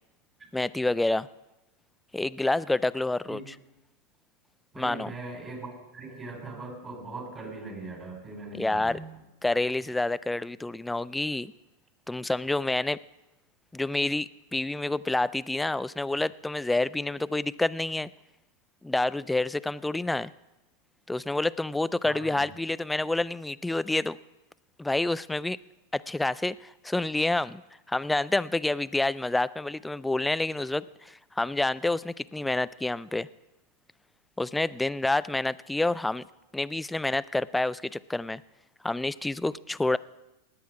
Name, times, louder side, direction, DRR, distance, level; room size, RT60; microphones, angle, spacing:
voice 1, 0.5-1.3 2.1-3.4 4.8-5.1 8.6-9.0 9.4-11.5 12.1-13.0 13.7-18.1 18.8-20.3 21.1-24.2 24.8-25.6 25.9-27.6 27.9-33.3 34.4-36.3 36.5-38.4 38.8-40.0, left 2 dB, 5° left, 18 dB, 0.3 m, -28 dB
voice 2, 4.7-9.1 22.0-22.4, right 2 dB, 25° right, 2 dB, 4.0 m, -40 dB
19.5 x 8.5 x 4.8 m, 0.98 s
hypercardioid pair, 120°, 0 cm